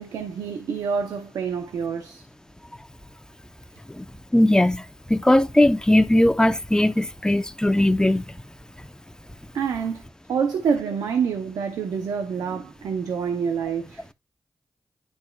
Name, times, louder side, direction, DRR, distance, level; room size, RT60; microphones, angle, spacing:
voice 1, 0.0-2.2 9.5-10.0 10.3-14.0, right 6 dB, 90° right, 0.7 m, -27 dB
voice 2, 4.3-4.8 5.1-8.2, left 1 dB, 10° left, 0.9 m, -19 dB
10.5 x 4.3 x 2.4 m
supercardioid pair, 40°, 6 cm